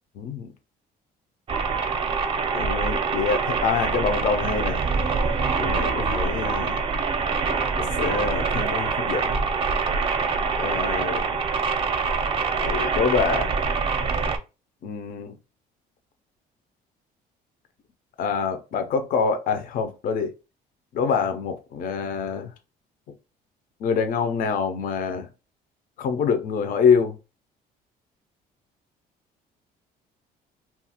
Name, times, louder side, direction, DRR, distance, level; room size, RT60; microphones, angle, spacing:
voice 1, 0.2-0.5 2.5-4.8 5.6-6.8 7.8-9.4 10.6-11.2 12.6-13.5 14.8-15.3 18.2-20.3 20.9-22.5 23.8-25.3 26.0-27.1, left 6 dB, 55° left, 0.5 m, -25 dB
sound 1, 1.5-14.4, right 5 dB, 35° right, 0.5 m, -25 dB
2.7 x 2.4 x 2.8 m
cardioid pair, 110°, 17 cm